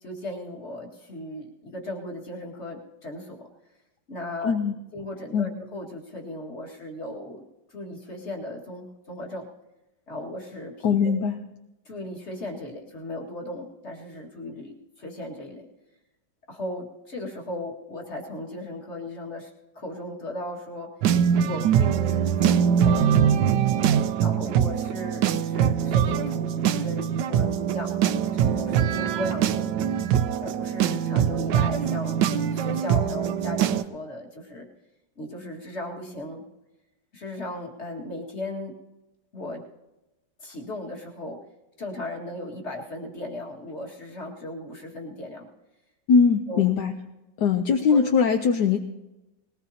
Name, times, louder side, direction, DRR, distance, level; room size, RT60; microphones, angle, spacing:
voice 1, 0.0-3.5 4.1-4.5 4.9-7.4 7.7-9.5 10.1-11.1 11.9-15.7 16.5-19.5 19.8-20.9 21.4-23.4 24.2-28.0 28.3-29.7 30.4-32.2 32.5-34.7 35.2-36.4 37.1-38.8 39.3-39.6 40.4-41.4 41.8-45.5 46.5-46.6 47.9-48.0, left 1 dB, 35° left, 0 dB, 2.2 m, -36 dB
voice 2, 4.4-4.7 5.3-5.5 10.8-11.4 46.1-46.9 47.4-48.8, left 6 dB, 70° left, 5 dB, 1.3 m, -21 dB
sound 1, 21.0-33.8, right 8 dB, 75° right, 1.3 m, -23 dB
20.0 x 18.5 x 2.8 m, 1.0 s
omnidirectional pair, 2.0 m